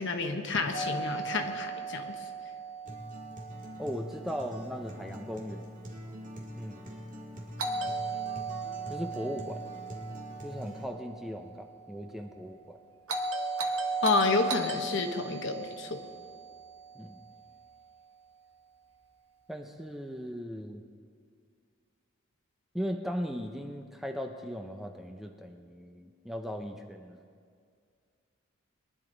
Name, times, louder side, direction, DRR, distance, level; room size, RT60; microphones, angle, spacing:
voice 1, 0.0-2.1 14.0-16.0, left 3 dB, 60° left, 5 dB, 1.2 m, -30 dB
Doorbell, 0.7-4.7 7.6-11.8 13.1-17.5, right 3 dB, 80° right, 1.2 m, -36 dB
Acoustic guitar, 2.8-10.8, equal, 40° right, 2.1 m, -44 dB
voice 2, 3.8-5.6 6.6-6.9 8.9-9.7 10.4-12.8 16.9-17.3 19.5-20.8 22.7-27.3, equal, ahead, 4 dB, 0.6 m, -38 dB
22.5 x 11.0 x 4.0 m, 2.1 s
head